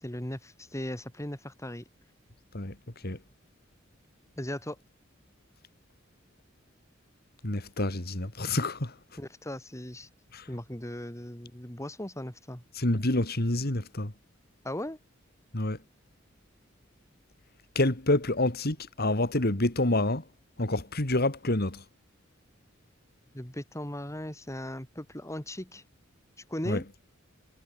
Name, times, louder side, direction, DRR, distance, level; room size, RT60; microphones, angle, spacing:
voice 1, 0.0-1.8 4.4-4.8 9.2-10.1 10.5-12.6 14.6-15.0 23.3-25.8 26.5-26.9, left 1 dB, 15° left, 3.3 m, -37 dB
voice 2, 7.4-8.9 10.3-10.5 12.7-14.1 15.5-15.8 17.7-20.2 20.6-21.8 26.6-26.8, left 2 dB, 50° left, 2.8 m, -27 dB
head